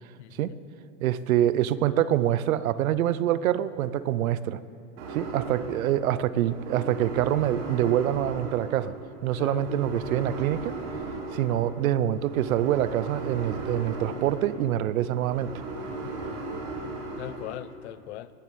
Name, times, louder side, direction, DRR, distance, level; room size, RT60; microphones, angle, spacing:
voice 1, 0.2-0.5 9.4-9.6 16.0-16.4 17.2-18.3, left 13 dB, 55° left, 0.6 m, -40 dB
voice 2, 1.0-4.6 5.1-8.9 9.2-10.7 11.3-15.5, right 11 dB, 85° right, 0.8 m, -25 dB
sound 1, 5.0-17.5, right 3 dB, 55° right, 3.9 m, -37 dB
19.0 x 7.5 x 8.4 m
supercardioid pair, 165°, 41 cm